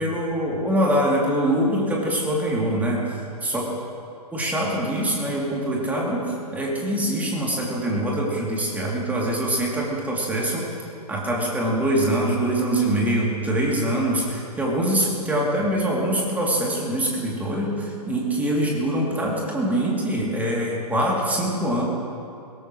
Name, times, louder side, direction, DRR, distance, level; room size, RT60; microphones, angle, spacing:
voice 1, 0.0-3.7 4.3-10.7 11.1-21.8, right 1 dB, 5° right, -3 dB, 3.1 m, -24 dB
22.0 x 17.5 x 3.3 m, 2.5 s
figure-of-eight pair, 120°, 21 cm